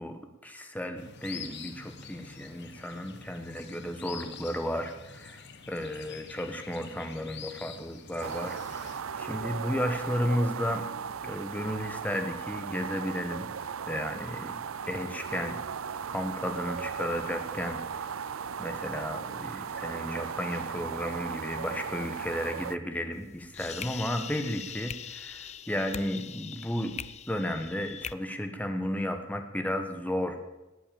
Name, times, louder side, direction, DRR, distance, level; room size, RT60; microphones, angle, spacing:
voice 1, 0.0-10.8 11.2-13.5 13.9-15.6 16.1-18.1 18.6-27.0 27.3-30.4, equal, 10° left, 6 dB, 1.4 m, -33 dB
sound 1, 1.0-9.0, left 6 dB, 55° left, 1.3 m, -46 dB
sound 2, 8.2-22.8, right 6 dB, 80° right, 0.6 m, -37 dB
sound 3, 23.1-28.1, left 8 dB, 35° left, 0.5 m, -41 dB
19.0 x 8.3 x 7.2 m, 1.1 s
head